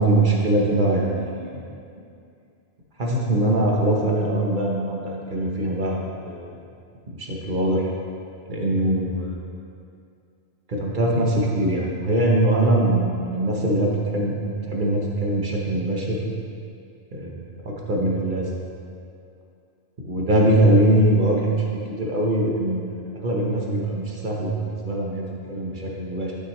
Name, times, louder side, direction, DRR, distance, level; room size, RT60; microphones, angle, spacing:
voice 1, 0.0-1.6 3.0-6.0 6.3-6.6 7.1-7.9 8.5-9.4 10.7-14.4 14.7-16.2 17.1-18.5 20.0-26.3, right 1 dB, 40° right, -2 dB, 1.2 m, -22 dB
11.5 x 6.3 x 3.2 m, 2.4 s
omnidirectional pair, 1.3 m